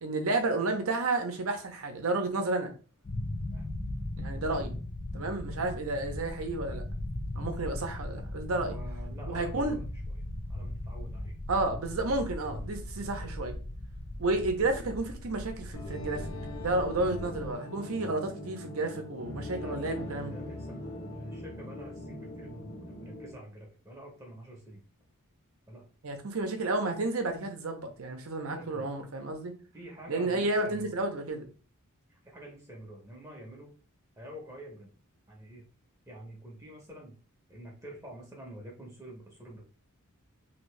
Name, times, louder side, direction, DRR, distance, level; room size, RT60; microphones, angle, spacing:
voice 1, 0.0-2.7 4.2-4.8 5.1-6.8 7.4-8.8 9.3-9.8 11.5-13.5 14.2-16.3 16.6-20.3 26.0-29.5 30.1-31.5, right 2 dB, 65° right, 0.7 m, -31 dB
sound 1, 3.0-17.5, left 1 dB, 35° left, 0.4 m, -38 dB
voice 2, 8.5-10.2 10.5-11.3 19.5-24.8 25.7-25.8 28.5-28.9 29.7-30.9 32.1-33.7 34.2-34.9 35.3-35.6 36.1-37.2 37.5-39.6, right 1 dB, 15° right, 0.7 m, -47 dB
sound 2, 15.7-23.3, left 1 dB, 65° left, 0.9 m, -41 dB
2.8 x 2.7 x 3.2 m
head